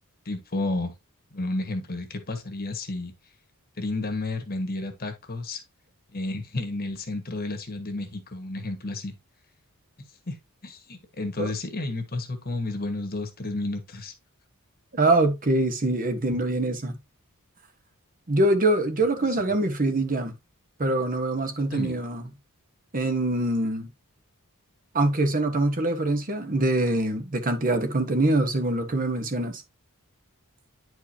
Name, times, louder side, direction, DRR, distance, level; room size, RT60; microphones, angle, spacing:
voice 1, 0.2-0.9 1.3-3.1 3.8-5.6 6.1-9.1 10.3-10.4 10.6-14.1 19.2-19.5 21.7-22.0, left 2 dB, 45° left, 1.5 m, -31 dB
voice 2, 14.9-17.0 18.3-20.3 20.8-22.2 22.9-23.9 24.9-29.6, right 2 dB, 40° right, 1.1 m, -24 dB
9.9 x 4.7 x 2.7 m
head